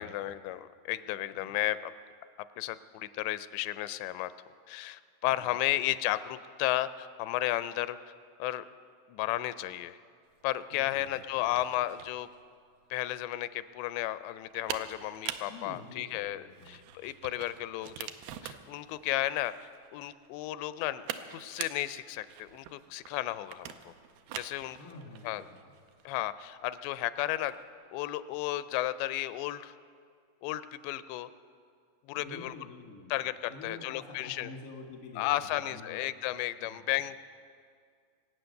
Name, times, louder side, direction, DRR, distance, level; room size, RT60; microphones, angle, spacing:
voice 1, 0.0-1.9 2.6-4.3 4.7-8.0 8.4-8.7 9.1-10.0 10.4-12.3 12.9-18.1 18.4-21.1 21.3-23.9 24.3-24.8 25.2-25.4 26.1-27.6 27.9-29.7 30.4-31.3 32.1-32.5 33.1-34.5 35.2-37.2, left 15 dB, 85° left, 14 dB, 2.7 m, -33 dB
sound 1, 10.3-27.7, right 10 dB, 85° right, 2.2 m, -45 dB
voice 2, 10.7-11.2 15.5-16.8 24.8-25.8 32.1-33.1 33.5-36.0 36.6-36.8, left 3 dB, 60° left, 1 dB, 0.8 m, -48 dB
24.0 x 8.6 x 6.5 m, 2.2 s
omnidirectional pair, 5.0 m